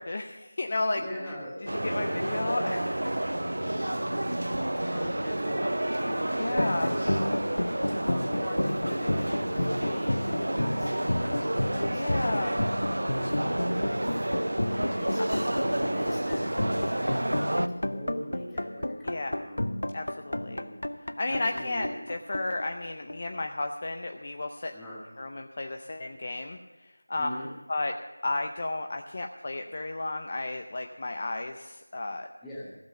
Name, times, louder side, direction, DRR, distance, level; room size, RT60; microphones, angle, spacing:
voice 1, 0.0-1.0 1.6-3.4 6.4-6.9 11.9-12.5 19.0-19.4 19.9-20.6 21.2-24.7 25.2-27.3 27.7-27.9 28.2-32.3, left 2 dB, 25° left, 5 dB, 0.5 m, -33 dB
voice 2, 1.0-2.6 3.8-7.3 7.6-14.3 15.0-19.6 20.4-20.8 21.2-22.1 24.7-25.1 27.2-27.5 32.4-32.7, equal, 5° left, -8 dB, 1.3 m, -41 dB
sound 1, 1.7-17.7, right 1 dB, 80° right, 0.7 m, -30 dB
sound 2, 6.6-23.4, left 1 dB, 80° left, 0.7 m, -31 dB
15.5 x 7.8 x 7.0 m, 1.2 s
figure-of-eight pair, 180°, 0 cm